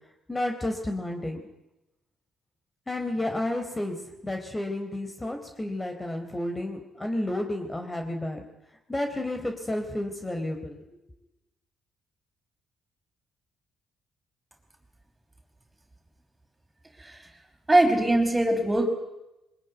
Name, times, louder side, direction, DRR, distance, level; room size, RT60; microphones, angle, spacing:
voice 1, 0.3-1.4 2.9-4.0 4.2-8.4 8.9-10.8, left 1 dB, 20° left, 4 dB, 4.1 m, -31 dB
voice 2, 17.7-18.9, right 1 dB, 20° right, 4 dB, 5.3 m, -21 dB
23.0 x 20.5 x 9.5 m, 0.93 s
hypercardioid pair, 55°, 0 cm